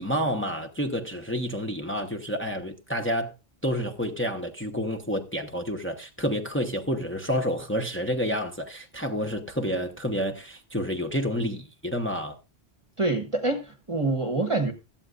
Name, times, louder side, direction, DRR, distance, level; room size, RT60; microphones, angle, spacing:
voice 1, 0.0-3.3 3.6-12.4, equal, 10° left, 1.0 m, -29 dB
voice 2, 13.0-14.7, right 2 dB, 30° right, 1.2 m, -26 dB
16.0 x 12.5 x 2.5 m
omnidirectional pair, 1.1 m